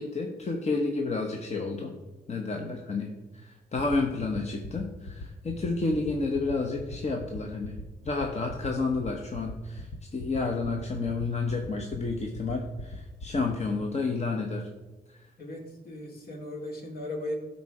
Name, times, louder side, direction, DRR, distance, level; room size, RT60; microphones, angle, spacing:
voice 1, 0.0-1.9 2.3-7.8 8.0-14.7 15.1-15.2, left 3 dB, 40° left, 2 dB, 1.1 m, -30 dB
sound 1, 3.8-13.7, left 2 dB, 85° left, 1.2 m, -39 dB
voice 2, 15.4-17.3, left 1 dB, 65° left, 0 dB, 2.4 m, -37 dB
12.0 x 4.3 x 4.9 m, 1.2 s
cardioid pair, 70°, 17 cm